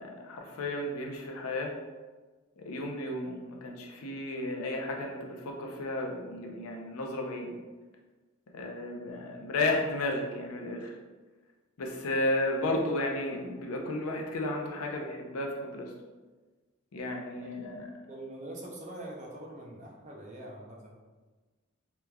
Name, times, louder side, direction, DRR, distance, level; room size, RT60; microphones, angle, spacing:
voice 1, 0.0-1.7 2.6-7.5 8.5-10.9 11.8-15.9 16.9-17.8, left 2 dB, 85° left, 1 dB, 0.5 m, -33 dB
voice 2, 18.1-20.9, right 1 dB, 35° right, -2 dB, 0.5 m, -44 dB
3.4 x 3.0 x 2.3 m, 1.3 s
head